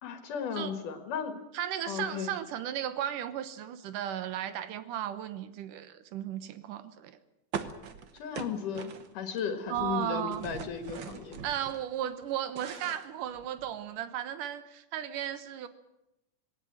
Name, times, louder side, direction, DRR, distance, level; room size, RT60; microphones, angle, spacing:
voice 1, 0.0-1.4 1.9-2.4 8.1-11.4, left 7 dB, 80° left, 8 dB, 3.2 m, -35 dB
voice 2, 1.5-7.2 9.7-10.4 11.4-15.7, right 10 dB, 85° right, 12 dB, 2.7 m, -35 dB
sound 1, 7.5-9.4 9.7-11.8 12.2-13.8, right 7 dB, 50° right, 1.4 m, -41 dB
19.5 x 18.5 x 8.7 m, 0.91 s
omnidirectional pair, 3.6 m